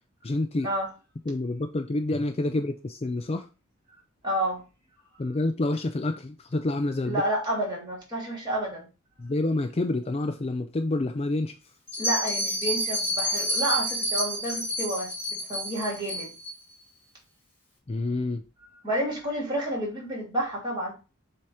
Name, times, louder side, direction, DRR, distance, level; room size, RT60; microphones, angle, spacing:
voice 1, 0.2-0.7 1.3-3.5 5.2-7.2 9.2-11.5 17.9-18.4, left 2 dB, 30° left, 0.4 m, -28 dB
voice 2, 4.2-4.6 7.1-8.9 12.0-16.3 18.8-20.9, right 1 dB, 20° right, 3.1 m, -30 dB
Bell, 11.9-16.5, equal, 10° left, 2.6 m, -29 dB
7.4 x 2.9 x 4.8 m
head